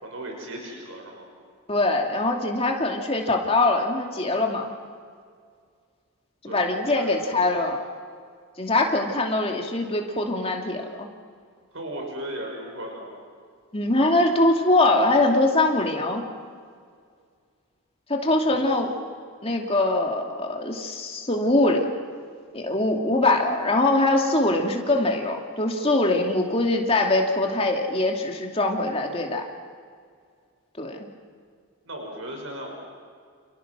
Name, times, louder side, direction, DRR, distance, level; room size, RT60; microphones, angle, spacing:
voice 1, 0.0-1.3 6.5-6.6 6.8-7.3 11.7-13.1 18.4-18.6 31.8-32.8, right 1 dB, 70° right, 1 dB, 5.9 m, -36 dB
voice 2, 1.7-4.7 6.4-7.8 8.6-11.1 13.7-16.2 18.1-18.9 19.4-21.9 22.5-29.4 30.8-31.1, left 2 dB, 25° left, 2 dB, 2.6 m, -23 dB
29.5 x 28.5 x 6.2 m, 2.1 s
head